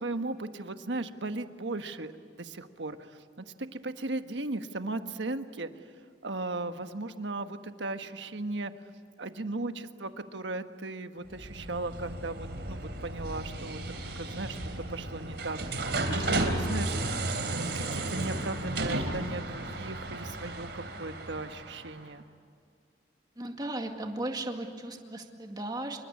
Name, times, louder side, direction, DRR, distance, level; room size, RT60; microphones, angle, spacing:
voice 1, 0.0-2.1 2.4-3.2 3.6-5.7 6.2-8.7 9.2-13.8 14.1-14.6 14.9-17.0 17.4-22.2, right 2 dB, 80° right, 8 dB, 1.4 m, -36 dB
sound 1, 11.3-22.0, right 2 dB, 65° right, 3.3 m, -34 dB
voice 2, 23.4-26.0, right 1 dB, 20° right, 3 dB, 2.1 m, -36 dB
27.0 x 23.5 x 8.4 m, 2.3 s
head